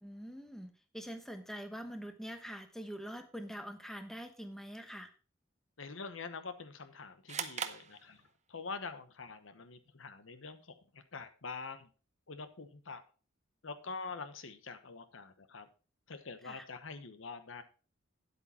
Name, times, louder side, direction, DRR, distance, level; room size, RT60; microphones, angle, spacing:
voice 1, 0.0-5.1 16.4-16.7, equal, ahead, 7 dB, 1.1 m, -44 dB
voice 2, 5.8-8.2 8.5-11.9 12.3-13.0 13.6-15.7 16.1-17.6, left 4 dB, 80° left, 10 dB, 1.0 m, -45 dB
sound 1, 7.3-8.7, right 7 dB, 35° right, 0.7 m, -41 dB
9.9 x 8.3 x 4.3 m, 0.37 s
head